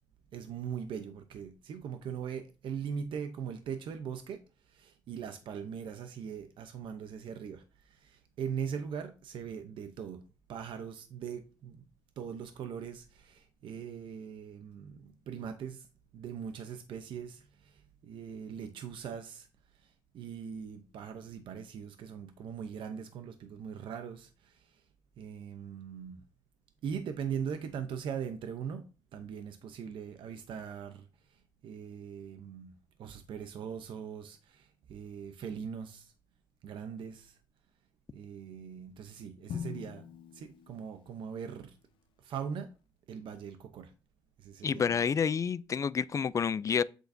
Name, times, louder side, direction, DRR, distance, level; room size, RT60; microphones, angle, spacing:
voice 1, 0.3-10.2 10.5-11.8 12.2-15.9 16.1-19.5 19.7-24.8 25.2-26.2 26.8-28.9 29.1-32.7 33.0-36.1 36.6-37.4 38.1-40.1 40.3-41.8 42.2-42.7 43.1-43.9 44.4-45.0, right 7 dB, 70° right, 0.8 m, -41 dB
Drum, 39.5-41.5, left 8 dB, 75° left, 0.8 m, -43 dB
voice 2, 44.6-46.8, left 6 dB, 40° left, 0.4 m, -29 dB
8.0 x 6.3 x 2.7 m
cardioid pair, 85°, 9 cm